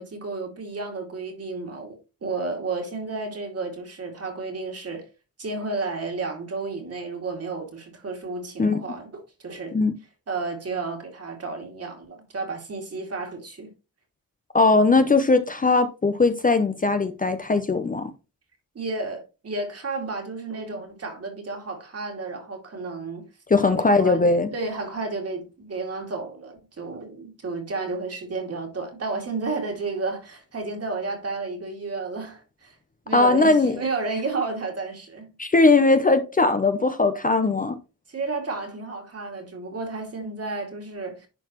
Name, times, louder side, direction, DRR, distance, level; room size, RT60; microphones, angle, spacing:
voice 1, 0.0-5.0 5.4-9.8 10.3-13.7 18.7-23.3 23.6-23.7 24.0-24.2 24.5-32.8 33.1-35.3 38.1-41.3, right 3 dB, 45° right, 2.4 m, -32 dB
voice 2, 14.5-18.1 23.5-24.5 33.1-33.8 35.4-37.8, left 3 dB, 25° left, 0.6 m, -19 dB
10.5 x 4.0 x 3.0 m
wide cardioid pair, 110°, 33 cm